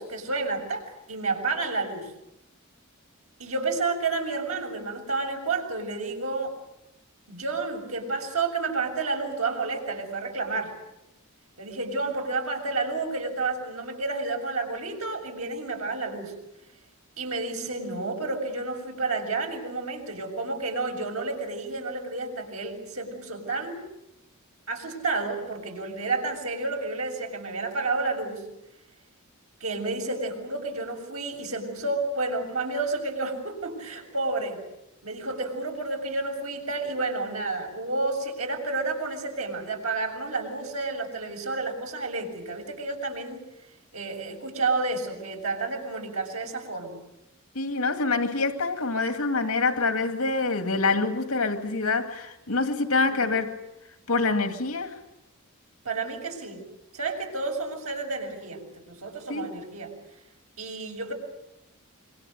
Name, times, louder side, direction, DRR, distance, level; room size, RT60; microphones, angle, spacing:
voice 1, 0.0-2.1 3.4-6.6 7.3-10.7 11.6-16.3 17.2-23.8 24.7-28.4 29.6-34.6 35.0-43.4 43.9-47.0 53.1-53.4 55.8-56.6 56.9-59.9 60.6-61.1, right 3 dB, 85° right, 7.2 m, -30 dB
voice 2, 47.5-53.6 54.1-55.0 59.3-59.6, left 3 dB, 75° left, 2.4 m, -26 dB
26.5 x 24.0 x 8.0 m
head